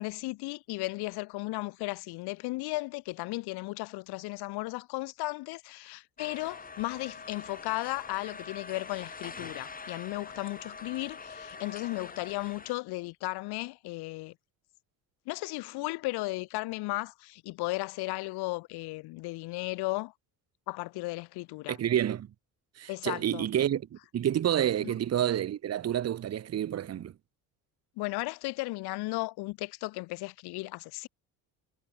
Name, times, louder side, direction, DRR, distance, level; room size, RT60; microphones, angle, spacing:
voice 1, 0.0-14.3 15.3-20.1 20.7-21.8 22.9-23.5 24.8-24.9 28.0-31.1, left 22 dB, 80° left, 1.8 m, -35 dB
sound 1, 6.2-12.7, left 4 dB, 20° left, 2.6 m, -44 dB
voice 2, 21.7-22.3 22.8-27.1, right 10 dB, 40° right, 1.2 m, -29 dB
cardioid pair, 100°, 38 cm